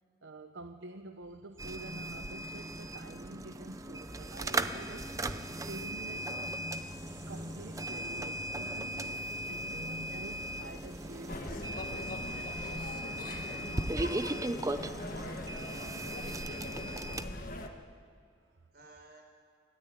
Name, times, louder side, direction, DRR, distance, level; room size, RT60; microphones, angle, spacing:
voice 1, 0.2-5.1 5.6-6.6 7.3-12.1 18.4-18.6, right 2 dB, 75° right, 7 dB, 0.9 m, -48 dB
sound 1, 1.6-17.2, right 1 dB, 15° right, 0.6 m, -38 dB
sound 2, 4.0-11.4, left 1 dB, 35° right, 5.8 m, -50 dB
sound 3, 11.3-17.7, left 1 dB, 45° left, 1.6 m, -41 dB
voice 2, 15.6-16.0 16.5-17.0 18.7-19.2, right 2 dB, 55° right, 3 dB, 4.4 m, -55 dB
28.5 x 13.0 x 9.7 m, 2.3 s
head